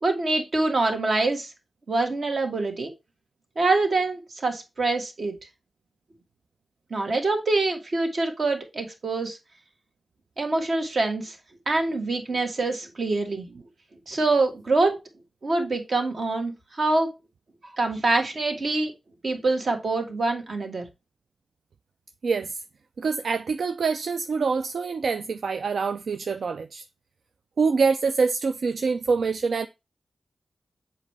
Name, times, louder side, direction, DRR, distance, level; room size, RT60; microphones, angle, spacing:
voice 1, 0.0-1.5 1.9-2.9 3.5-5.3 6.9-9.4 10.4-11.4 11.7-13.5 14.1-15.0 15.4-17.1 17.6-18.9 19.2-20.9, right 3 dB, 55° right, 1.6 m, -25 dB
voice 2, 22.2-22.6 23.0-26.8 27.6-29.7, right 5 dB, 75° right, 0.4 m, -25 dB
7.3 x 4.2 x 3.2 m
wide cardioid pair, 105°, 0 cm